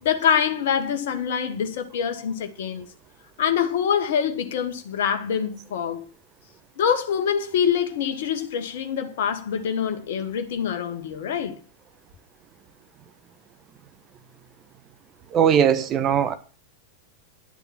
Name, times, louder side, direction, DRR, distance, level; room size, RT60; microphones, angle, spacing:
voice 1, 0.0-2.9 3.4-6.1 6.8-11.6, left 8 dB, 55° left, 1.3 m, -25 dB
voice 2, 15.3-16.3, right 8 dB, 30° right, 1.2 m, -19 dB
11.0 x 7.1 x 6.0 m
figure-of-eight pair, 90°, 0 cm